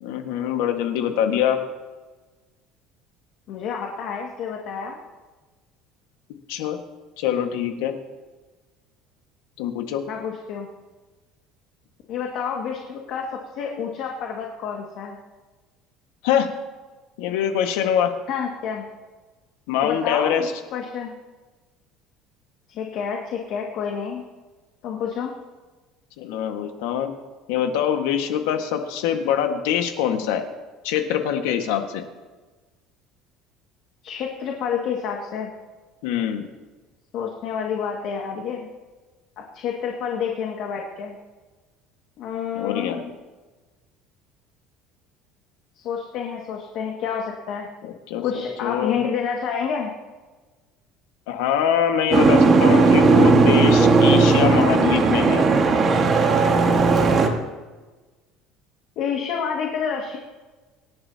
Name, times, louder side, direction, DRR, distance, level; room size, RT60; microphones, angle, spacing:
voice 1, 0.0-1.6 6.5-6.8 7.2-7.9 9.6-10.0 16.2-16.5 17.2-18.1 19.7-20.5 26.2-27.1 27.5-30.4 30.8-32.0 36.0-36.4 42.5-43.0 47.8-49.0 51.3-55.5, left 9 dB, 90° left, 5 dB, 1.6 m, -24 dB
voice 2, 3.5-5.0 10.1-10.7 12.1-15.2 18.3-18.8 19.8-21.1 22.7-24.2 24.8-25.3 34.0-35.5 37.1-38.7 39.5-41.2 42.2-43.0 45.8-47.7 48.2-49.9 59.0-60.2, left 7 dB, 60° left, 0 dB, 2.0 m, -29 dB
Boat Water vehicle, 52.1-57.3, right 4 dB, 30° right, 1.7 m, -16 dB
26.0 x 11.0 x 2.9 m, 1.3 s
cardioid pair, 145°, 0 cm